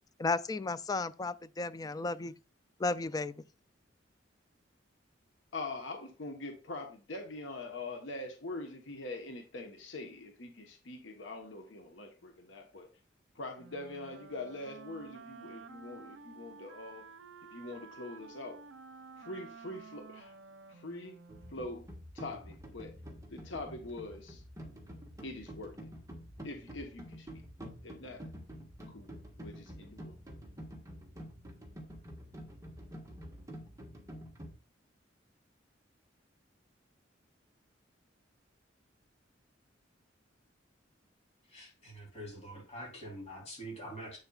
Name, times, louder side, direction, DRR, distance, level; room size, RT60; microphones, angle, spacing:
voice 1, 0.2-2.3 2.8-3.4, left 3 dB, 20° left, 0.3 m, -34 dB
voice 2, 5.5-12.9 13.3-17.0 17.5-18.6 19.2-20.4 20.7-21.2 21.5-21.9 22.1-23.0 23.3-24.4 25.2-25.8 26.4-27.4 27.8-28.3 28.9-29.1 29.4-30.2, left 2 dB, 75° left, 1.1 m, -43 dB
Wind instrument woodwind instrument, 13.6-21.7, right 4 dB, 90° right, 0.6 m, -52 dB
sound 1, 21.3-34.5, equal, 20° right, 1.5 m, -48 dB
voice 3, 41.4-44.2, right 1 dB, 35° left, 3.6 m, -45 dB
8.0 x 6.6 x 2.4 m
head